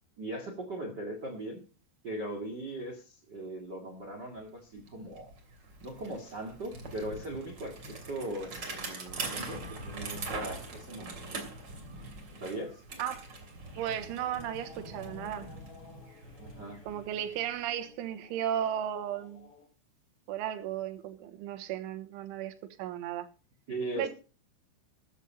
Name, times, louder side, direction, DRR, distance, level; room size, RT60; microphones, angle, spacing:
voice 1, 0.2-1.6 2.0-5.3 5.8-11.4 12.4-12.8 16.4-16.8 23.7-24.1, right 1 dB, 60° right, 1.1 m, -39 dB
Bicycle, 4.4-4.5 4.7-17.6, right 2 dB, 30° right, 2.5 m, -43 dB
sound 1, 13.3-19.7, left 4 dB, 40° left, 2.7 m, -55 dB
voice 2, 13.8-15.5 16.9-19.5 20.3-23.3 24.0-24.1, right 10 dB, 80° right, 3.7 m, -35 dB
14.5 x 10.0 x 5.4 m
omnidirectional pair, 5.6 m